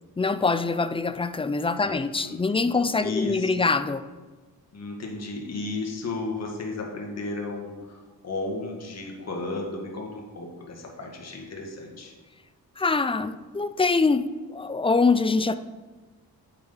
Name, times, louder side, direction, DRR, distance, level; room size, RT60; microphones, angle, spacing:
voice 1, 0.2-4.1 12.8-15.6, left 4 dB, 15° left, 12 dB, 0.4 m, -24 dB
voice 2, 1.8-2.4 3.0-3.5 4.7-12.1, left 3 dB, 45° left, 0 dB, 1.9 m, -34 dB
8.8 x 6.7 x 5.7 m, 1.3 s
cardioid pair, 110°, 37 cm